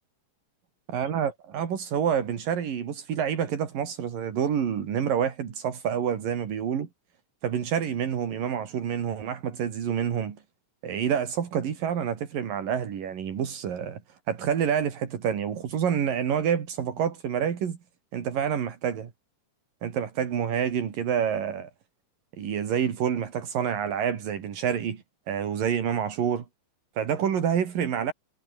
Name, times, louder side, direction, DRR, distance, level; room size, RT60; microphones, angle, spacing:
voice 1, 0.9-6.9 7.4-10.4 10.8-14.0 14.3-17.8 18.1-19.1 19.8-21.7 22.4-26.5 27.0-28.1, right 8 dB, 80° right, 4.4 m, -28 dB
omnidirectional pair, 3.9 m